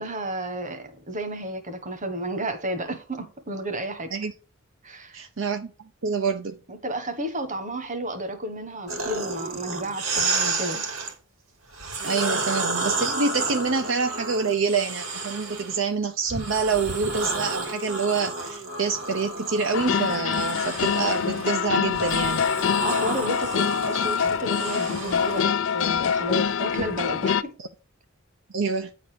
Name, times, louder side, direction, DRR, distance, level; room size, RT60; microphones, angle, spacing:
voice 1, 0.0-4.1 4.8-5.3 6.7-10.9 22.8-27.5, right 1 dB, 35° right, 1.4 m, -32 dB
voice 2, 5.1-5.7 6.0-6.6 12.0-22.5 27.6-27.7 28.5-28.9, right 4 dB, 60° right, 0.7 m, -26 dB
sound 1, 8.9-11.1 11.7-15.8 16.3-25.4, right 3 dB, 80° right, 2.4 m, -31 dB
sound 2, 19.7-27.4, left 7 dB, 60° left, 0.4 m, -25 dB
9.7 x 4.0 x 5.1 m
head